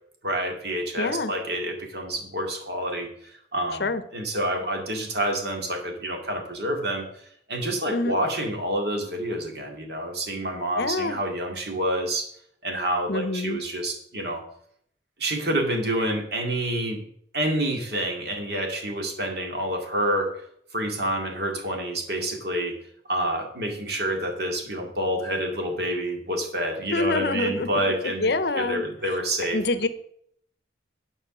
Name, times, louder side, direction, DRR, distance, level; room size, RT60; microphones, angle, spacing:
voice 1, 0.2-3.1 3.5-7.1 7.5-12.3 12.6-14.4 15.2-17.0 17.3-20.3 20.7-22.7 23.1-29.6, right 1 dB, 60° right, 2 dB, 2.3 m, -28 dB
voice 2, 1.0-1.3 3.8-4.0 7.9-8.2 10.8-11.2 13.1-13.6 26.9-28.8 29.5-29.9, left 2 dB, 60° left, 12 dB, 0.7 m, -26 dB
10.0 x 5.5 x 6.1 m, 0.67 s
head